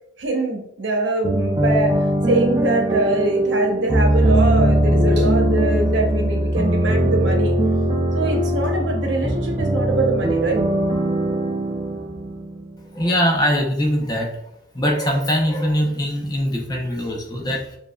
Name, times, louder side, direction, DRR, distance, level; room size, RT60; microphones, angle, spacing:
voice 1, 0.2-7.5 8.1-10.6, right 2 dB, 75° right, 2 dB, 0.9 m, -23 dB
sound 1, 1.2-12.9, right 1 dB, 25° right, 0.4 m, -20 dB
voice 2, 12.9-14.4 14.7-17.8, equal, 20° left, 0 dB, 0.6 m, -22 dB
6.9 x 2.5 x 2.3 m, 0.76 s
head